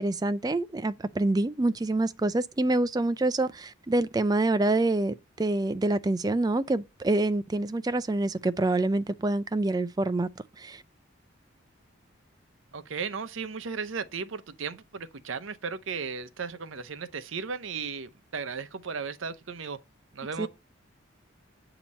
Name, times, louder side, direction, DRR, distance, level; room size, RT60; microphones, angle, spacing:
voice 1, 0.0-10.3 10.6-10.8 20.4-20.5, right 2 dB, 20° right, 0.3 m, -26 dB
voice 2, 12.7-19.8 20.1-20.5, right 5 dB, 75° right, 0.7 m, -35 dB
8.4 x 2.9 x 5.3 m
head